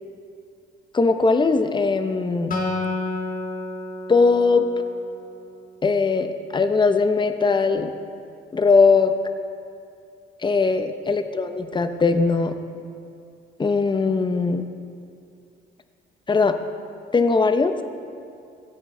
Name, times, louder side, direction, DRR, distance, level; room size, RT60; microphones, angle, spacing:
voice 1, 0.9-2.5 4.1-4.7 5.8-7.9 8.5-9.1 10.4-12.6 13.6-14.7 16.3-16.6 17.1-17.7, left 4 dB, 25° left, 8 dB, 0.7 m, -20 dB
Acoustic guitar, 2.5-5.9, left 2 dB, 45° left, 1.7 m, -31 dB
16.5 x 7.9 x 3.8 m, 2.4 s
cardioid pair, 90°, 20 cm